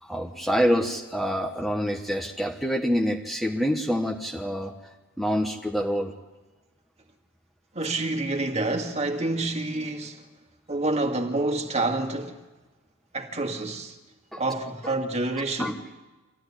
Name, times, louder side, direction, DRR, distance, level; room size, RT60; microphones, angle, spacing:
voice 1, 0.0-4.7 5.2-6.1 14.3-14.4 14.8-14.9 15.6-15.8, equal, ahead, 1.2 m, -26 dB
voice 2, 7.8-10.2 10.7-12.4 13.1-13.9 14.4-15.7, right 2 dB, 30° right, 2.1 m, -28 dB
25.5 x 15.5 x 9.9 m
head